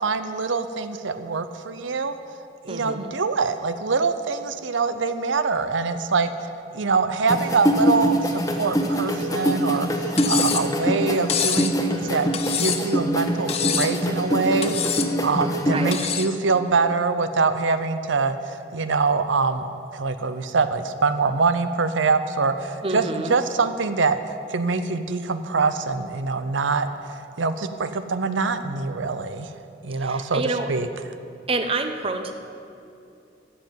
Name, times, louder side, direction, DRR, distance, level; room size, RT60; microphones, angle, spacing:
voice 1, 0.0-2.1 2.6-12.3 12.6-19.7 19.9-23.0 23.3-29.5 29.8-30.4 30.7-30.9, right 4 dB, 85° right, 10 dB, 0.7 m, -24 dB
voice 2, 2.7-3.1 15.7-16.0 22.8-23.4 30.0-30.7 31.5-32.3, right 3 dB, 30° right, 7 dB, 0.8 m, -28 dB
sound 1, 7.3-15.9, equal, 20° left, 1.1 m, -24 dB
Cutlery silverware, 10.2-10.7 11.3-11.7 12.3-12.9 13.5-14.0 14.6-15.1 15.9-16.3, left 8 dB, 35° left, 0.7 m, -26 dB
14.0 x 7.8 x 9.3 m, 2.7 s
head